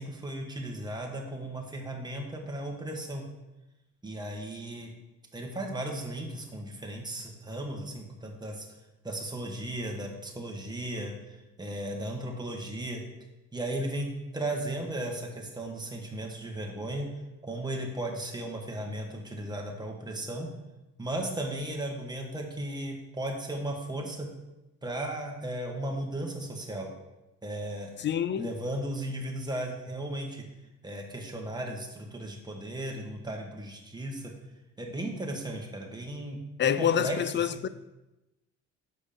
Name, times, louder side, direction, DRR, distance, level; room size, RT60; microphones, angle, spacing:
voice 1, 0.0-3.2 4.0-4.9 5.3-8.7 9.0-13.0 13.5-17.1 17.4-20.5 21.0-24.3 24.8-26.9 27.4-27.9 28.4-30.4 30.8-34.3 34.8-37.6, right 1 dB, 15° right, 1.6 m, -36 dB
voice 2, 28.0-28.5 36.6-37.7, left 9 dB, 40° left, 0.4 m, -27 dB
6.7 x 5.2 x 5.2 m
cardioid pair, 90°, 30 cm